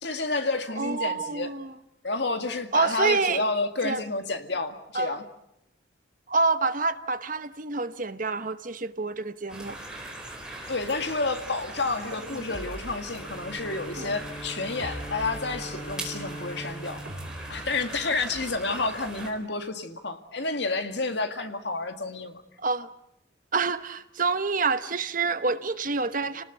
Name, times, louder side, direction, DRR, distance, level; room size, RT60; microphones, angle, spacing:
voice 1, 0.0-1.5 2.0-5.2 10.7-17.0 17.5-22.4, left 3 dB, 60° left, 7 dB, 2.1 m, -30 dB
voice 2, 0.8-1.7 2.7-3.4 3.8-4.0 4.9-5.2 6.3-9.8 14.0-14.1 22.6-22.9 23.5-26.4, right 4 dB, 45° right, 11 dB, 1.1 m, -27 dB
sound 1, 9.5-19.3, right 2 dB, 5° right, 4.4 m, -41 dB
sound 2, 12.5-13.6 14.8-16.1 17.0-18.3, equal, 70° right, 3.5 m, -43 dB
Bowed string instrument, 13.1-18.5, right 1 dB, 35° left, 1.8 m, -42 dB
30.0 x 19.0 x 8.1 m, 0.83 s
head